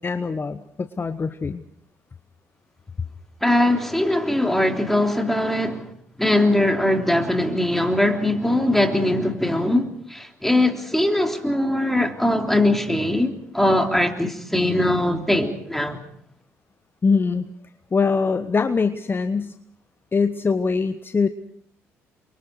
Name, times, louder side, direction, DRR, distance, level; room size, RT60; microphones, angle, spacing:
voice 1, 0.0-1.6 17.0-17.5 17.9-19.5 20.1-21.3, left 4 dB, 30° left, 1.1 m, -23 dB
voice 2, 3.4-5.9 6.2-16.0, left 1 dB, 5° left, 3.4 m, -21 dB
29.5 x 24.0 x 4.7 m
figure-of-eight pair, 50°, 7 cm